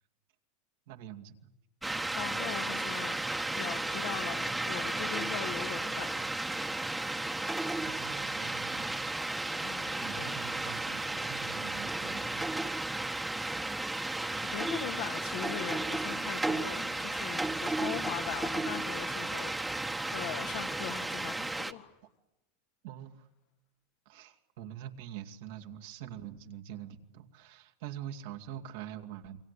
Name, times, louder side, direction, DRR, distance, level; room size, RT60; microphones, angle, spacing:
voice 1, 0.9-1.5 7.9-9.1 10.0-12.6 22.8-23.3 24.1-29.4, right 10 dB, 70° right, 2.4 m, -45 dB
sound 1, 1.8-21.7, right 2 dB, 10° right, 1.6 m, -34 dB
voice 2, 2.1-3.2 3.5-6.2 9.6-10.4 14.5-21.9, left 12 dB, 65° left, 2.2 m, -41 dB
28.0 x 24.0 x 8.3 m
hypercardioid pair, 105°, 0 cm